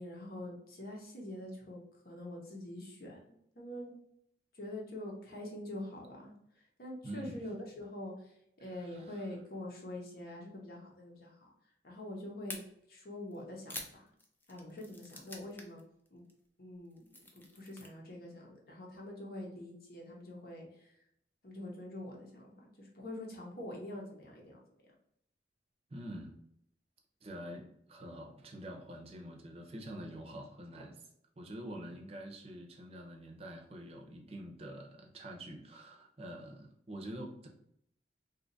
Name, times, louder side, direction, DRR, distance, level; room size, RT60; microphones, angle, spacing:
voice 1, 0.0-3.2 3.6-3.9 4.5-11.5 11.8-12.6 12.9-14.1 14.5-15.8 16.1-16.2 16.6-17.0 17.3-20.9 21.4-22.5 22.8-24.6, left 1 dB, 55° left, -1 dB, 0.9 m, -45 dB
voice 2, 7.0-7.4 8.6-9.2 25.9-26.4 27.2-31.0 31.4-37.5, right 1 dB, 35° right, 2 dB, 0.6 m, -46 dB
sound 1, 12.5-12.6 13.3-15.8 16.1-16.3 16.8-17.9, left 2 dB, 10° left, 0.4 m, -47 dB
2.7 x 2.4 x 3.9 m, 0.73 s
head